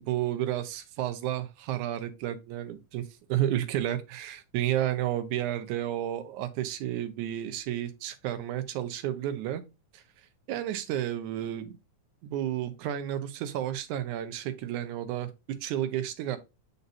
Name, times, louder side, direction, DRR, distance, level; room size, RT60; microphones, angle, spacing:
voice 1, 0.0-3.0 3.3-9.6 9.9-10.0 10.5-11.8 12.2-16.4, right 12 dB, 85° right, 2.2 m, -31 dB
9.1 x 4.0 x 2.6 m
omnidirectional pair, 3.5 m